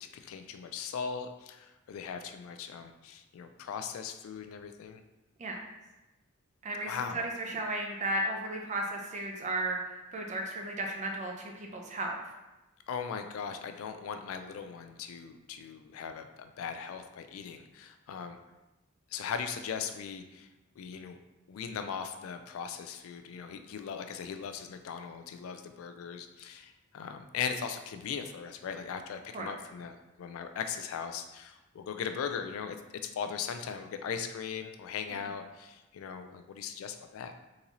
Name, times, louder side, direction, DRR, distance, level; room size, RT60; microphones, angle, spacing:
voice 1, 0.0-5.0 6.8-7.3 12.9-18.4 19.1-20.5 20.8-21.2 21.5-32.8 33.0-37.3, left 6 dB, 70° left, 9 dB, 0.3 m, -39 dB
voice 2, 6.6-9.8 10.1-12.2 29.3-29.5, right 1 dB, 35° right, 1 dB, 0.5 m, -34 dB
3.8 x 2.7 x 2.9 m, 1.0 s
head